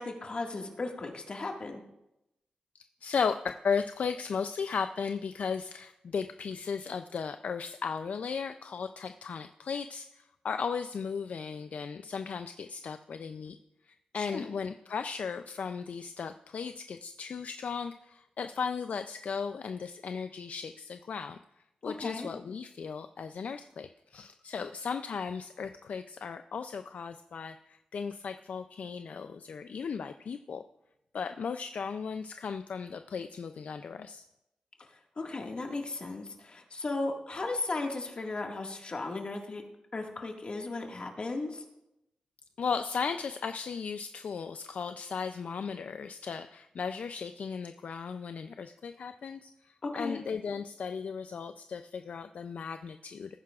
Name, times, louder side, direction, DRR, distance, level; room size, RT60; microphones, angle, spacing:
voice 1, 0.0-1.8 14.1-14.5 21.8-22.3 35.2-39.6 39.9-41.6 49.8-50.2, left 3 dB, 40° left, 2 dB, 1.8 m, -36 dB
voice 2, 3.0-13.6 13.8-21.4 21.8-30.6 31.1-34.2 42.6-53.4, left 6 dB, 65° left, 9 dB, 0.4 m, -36 dB
18.5 x 9.6 x 2.4 m, 0.88 s
wide cardioid pair, 110°, 3 cm